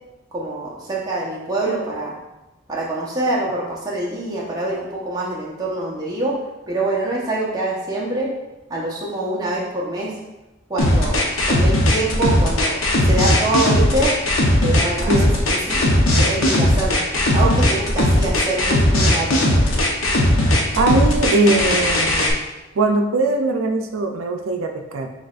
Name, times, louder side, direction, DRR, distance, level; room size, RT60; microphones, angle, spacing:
voice 1, 0.3-2.2 2.7-6.4 6.7-8.3 8.7-10.1 10.7-14.1 14.6-15.3 15.7-17.0 17.3-19.6, right 2 dB, 20° right, -5 dB, 0.9 m, -25 dB
sound 1, 10.8-22.3, left 1 dB, 80° left, 0.8 m, -17 dB
voice 2, 20.8-22.4 22.8-25.1, right 2 dB, 85° right, 4 dB, 0.5 m, -20 dB
6.3 x 3.0 x 2.5 m, 1.0 s
head